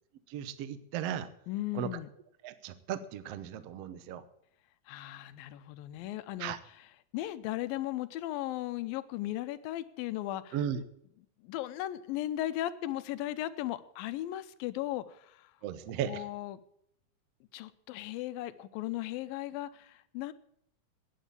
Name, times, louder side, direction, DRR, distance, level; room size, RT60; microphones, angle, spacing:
voice 1, 0.3-1.3 1.7-1.9 2.4-4.2 6.4-6.6 10.5-10.8 15.6-16.2, right 9 dB, 80° right, 13 dB, 1.4 m, -36 dB
voice 2, 1.5-2.1 4.9-6.9 7.1-10.6 11.4-15.5 16.1-16.6 17.5-20.3, left 14 dB, 80° left, 14 dB, 2.4 m, -37 dB
11.0 x 9.9 x 8.4 m, 0.72 s
omnidirectional pair, 4.2 m